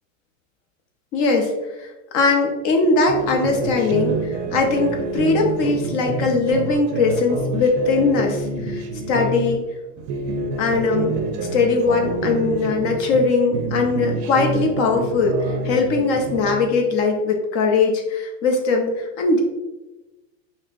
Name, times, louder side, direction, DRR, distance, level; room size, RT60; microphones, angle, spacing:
voice 1, 1.1-1.9 2.1-9.6 10.6-19.4, left 3 dB, 35° left, 2 dB, 0.6 m, -20 dB
sound 1, 3.1-9.6 10.0-13.3 13.5-16.7, right 3 dB, 50° right, 0.6 m, -27 dB
5.3 x 2.0 x 2.4 m, 1.0 s
supercardioid pair, 140°, 39 cm